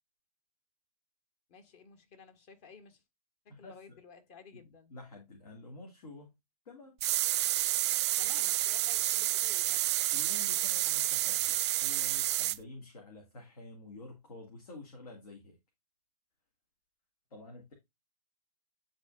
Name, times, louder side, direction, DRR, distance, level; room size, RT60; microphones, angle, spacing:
voice 1, 1.5-3.0 3.4-4.9 8.2-9.8, left 5 dB, 35° left, 1.7 m, -54 dB
voice 2, 3.5-4.0 4.5-4.6 4.9-6.3 6.7-7.0 10.1-15.6 17.3-17.7, left 2 dB, 65° left, 2.4 m, -49 dB
sound 1, 7.0-12.6, right 15 dB, 45° right, 0.4 m, -29 dB
10.5 x 3.9 x 2.5 m
hypercardioid pair, 130°, 20 cm